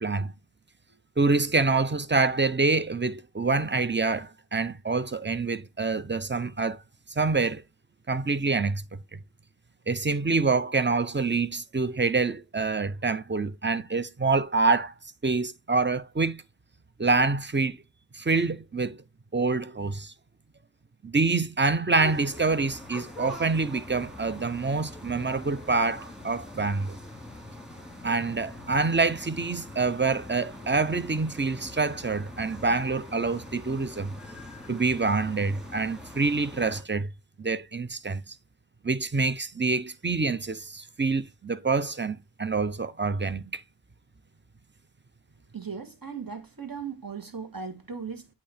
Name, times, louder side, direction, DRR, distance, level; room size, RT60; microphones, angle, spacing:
voice 1, 0.0-0.3 1.2-6.8 7.2-7.6 8.1-8.8 9.9-14.9 15.2-16.4 17.0-17.8 18.1-19.0 19.3-20.1 21.0-27.0 28.0-34.1 34.7-37.1 37.4-38.4 38.8-43.6, right 3 dB, 25° right, 0.6 m, -26 dB
sound 1, 22.0-36.8, left 1 dB, ahead, 2.4 m, -43 dB
voice 2, 45.5-48.3, right 6 dB, 50° right, 1.5 m, -37 dB
8.4 x 2.8 x 4.3 m
wide cardioid pair, 45°, 43 cm